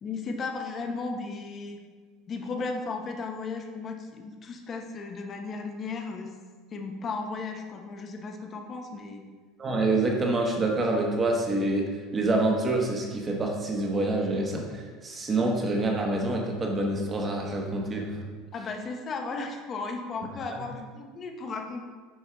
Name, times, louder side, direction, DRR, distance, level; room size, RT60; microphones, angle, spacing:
voice 1, 0.0-1.8 2.3-6.3 6.7-9.2 18.5-21.8, left 4 dB, 25° left, 3 dB, 0.8 m, -35 dB
voice 2, 9.6-18.1, right 2 dB, 20° right, 0 dB, 1.1 m, -27 dB
9.5 x 4.5 x 3.4 m, 1.5 s
cardioid pair, 155°, 0 cm